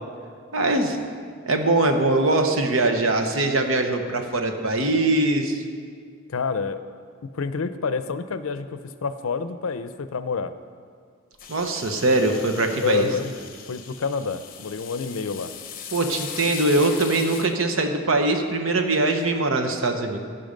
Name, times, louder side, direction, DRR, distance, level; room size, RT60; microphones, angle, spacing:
voice 1, 0.5-1.0 1.5-5.6 11.5-13.1 15.9-20.2, right 2 dB, 75° right, 5 dB, 1.0 m, -22 dB
voice 2, 6.3-6.8 7.3-10.5 12.8-13.3 13.7-15.5, left 5 dB, 85° left, 12 dB, 0.5 m, -28 dB
sound 1, 11.4-17.5, left 8 dB, 45° left, 0.9 m, -39 dB
16.0 x 5.7 x 5.2 m, 2.1 s
head